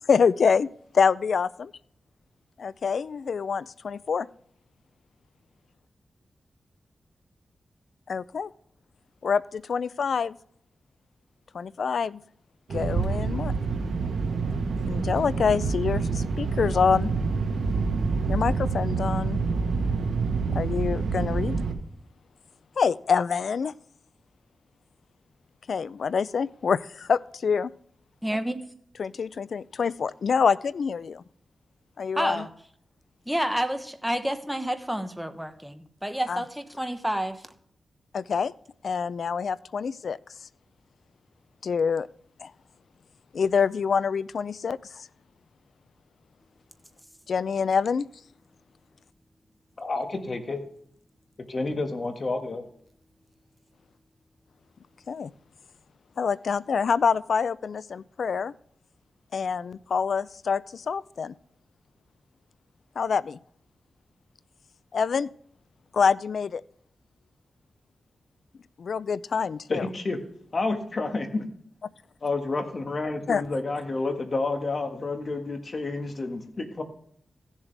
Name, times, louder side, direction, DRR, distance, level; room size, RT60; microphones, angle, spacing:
voice 1, 0.1-0.7 0.9-1.7 2.6-4.3 8.1-8.5 9.2-10.3 11.5-12.2 12.7-13.5 14.9-17.1 18.3-19.4 20.5-21.6 22.8-23.7 25.7-27.7 29.0-31.2 32.0-32.4 36.3-36.4 38.1-38.5 38.8-40.2 41.6-42.1 42.4-42.5 43.3-45.1 47.3-48.1 55.1-55.3 56.2-58.5 59.3-61.3 63.0-63.4 64.9-65.3 65.9-66.6 68.8-69.9 73.3-73.4, left 6 dB, 75° left, 19 dB, 0.3 m, -26 dB
sound 1, 12.7-21.7, right 4 dB, 85° right, 1.2 m, -27 dB
voice 2, 28.2-28.6 32.1-32.5 33.2-37.5 47.0-47.1, equal, 5° right, 8 dB, 1.1 m, -29 dB
voice 3, 49.8-50.6 51.5-52.6 69.7-70.2 70.5-71.4 72.2-76.8, left 3 dB, 50° left, 5 dB, 1.6 m, -29 dB
15.5 x 7.3 x 3.4 m, 0.65 s
cardioid pair, 70°, 0 cm